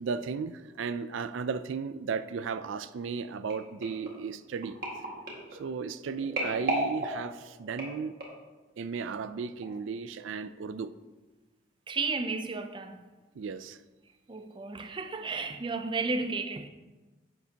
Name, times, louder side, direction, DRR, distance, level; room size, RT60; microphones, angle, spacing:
voice 1, 0.0-4.8 5.6-8.2 8.8-10.9 13.4-13.8, right 5 dB, 80° right, 0.4 m, -35 dB
sound 1, 3.5-8.5 9.1-9.3 9.6-9.7, right 1 dB, 50° right, 1.8 m, -36 dB
voice 2, 11.9-13.1 14.3-16.7, right 3 dB, 25° right, 0.5 m, -33 dB
10.5 x 8.2 x 2.9 m
head